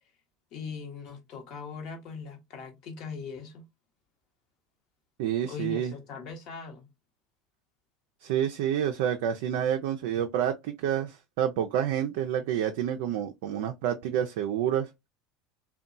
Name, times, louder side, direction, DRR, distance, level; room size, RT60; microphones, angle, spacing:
voice 1, 0.5-3.6 5.4-6.9, left 5 dB, 55° left, 0.9 m, -40 dB
voice 2, 5.2-5.9 8.2-14.9, right 10 dB, 65° right, 0.3 m, -28 dB
2.7 x 2.1 x 2.5 m
hypercardioid pair, 80°, 0 cm